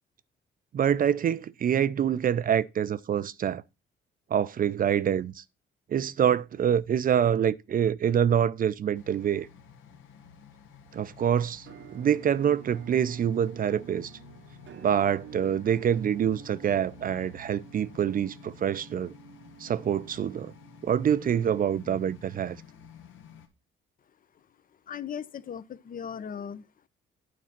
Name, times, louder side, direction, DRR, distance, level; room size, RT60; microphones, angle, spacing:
voice 1, 0.7-3.6 4.3-5.4 5.9-9.5 10.9-11.7 11.9-14.1 14.8-19.1 19.6-20.5 20.8-22.6, right 9 dB, 45° right, 0.5 m, -26 dB
sound 1, 8.9-23.5, left 7 dB, 80° left, 1.4 m, -51 dB
Musical instrument, 11.7-21.4, right 10 dB, 70° right, 0.9 m, -49 dB
voice 2, 24.9-26.9, left 8 dB, 45° left, 0.6 m, -38 dB
9.3 x 4.1 x 5.8 m
cardioid pair, 90°, 20 cm